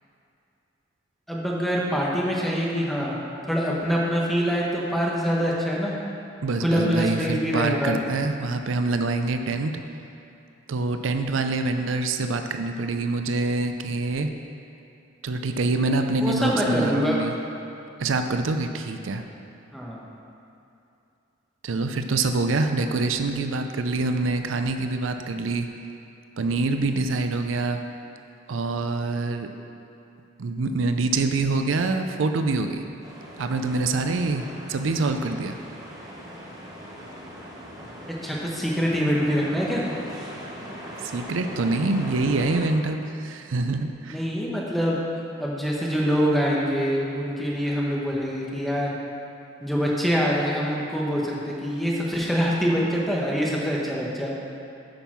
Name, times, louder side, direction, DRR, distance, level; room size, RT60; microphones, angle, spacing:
voice 1, 1.3-3.1 3.5-5.9 6.6-8.0 16.2-17.2 19.7-20.0 38.2-39.8 44.1-45.0 45.4-48.9 49.6-54.3, equal, ahead, -4 dB, 1.2 m, -25 dB
voice 2, 6.4-9.8 10.7-14.3 15.2-17.3 18.0-19.2 21.6-25.7 26.4-27.8 28.5-29.5 30.4-32.8 33.4-35.6 41.0-44.2, right 3 dB, 85° right, 6 dB, 0.5 m, -25 dB
sound 1, 33.0-42.7, equal, 20° right, 1.2 m, -40 dB
8.8 x 5.4 x 5.9 m, 2.8 s
head